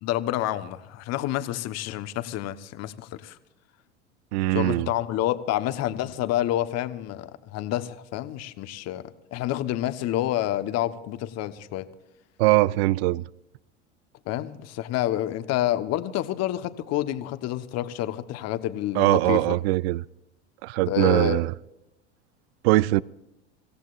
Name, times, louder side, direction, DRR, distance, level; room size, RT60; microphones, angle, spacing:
voice 1, 0.0-3.4 4.5-9.0 9.3-11.9 14.3-19.6 20.9-21.4, left 13 dB, 45° left, 1.3 m, -28 dB
voice 2, 4.3-4.9 12.4-13.2 19.0-20.0 20.6-21.5 22.6-23.0, right 18 dB, 65° right, 0.5 m, -21 dB
25.5 x 16.5 x 2.5 m
hypercardioid pair, 85°, 35 cm